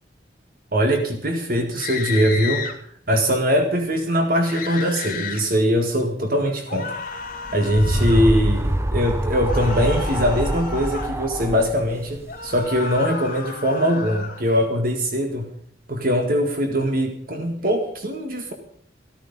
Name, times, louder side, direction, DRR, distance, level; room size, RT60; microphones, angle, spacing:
voice 1, 0.7-2.6 3.1-6.9 7.5-15.5 15.9-18.5, equal, 50° right, 4 dB, 1.9 m, -21 dB
sound 1, 1.7-2.7 4.4-5.4 6.7-8.3 9.4-11.1 12.3-14.4, left 5 dB, 45° left, 3.0 m, -33 dB
sound 2, 7.2-12.9, right 1 dB, 15° right, 0.7 m, -25 dB
14.5 x 13.5 x 5.4 m, 0.64 s
head